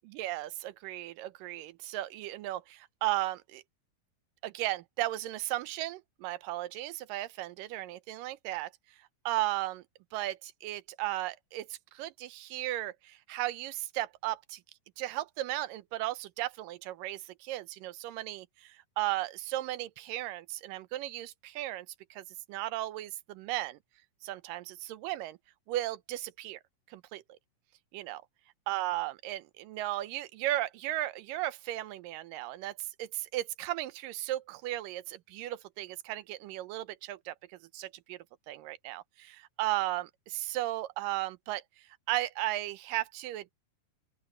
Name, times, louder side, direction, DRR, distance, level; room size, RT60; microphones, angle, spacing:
voice 1, 0.1-3.6 4.4-8.7 9.3-9.8 10.1-14.6 15.0-23.8 24.2-25.4 25.7-26.6 26.9-27.2 27.9-28.2 28.7-43.5, right 16 dB, 85° right, 2.4 m, -35 dB
open air
omnidirectional pair, 3.8 m